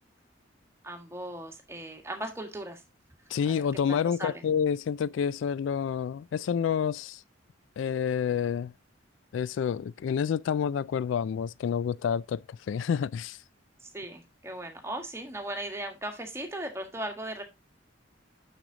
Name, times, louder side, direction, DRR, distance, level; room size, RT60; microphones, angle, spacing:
voice 1, 0.8-2.8 3.4-4.4 13.8-17.4, right 1 dB, 15° right, 1.5 m, -38 dB
voice 2, 3.3-7.2 7.8-8.7 9.3-13.4, left 7 dB, 75° left, 0.3 m, -28 dB
6.4 x 6.2 x 3.8 m
head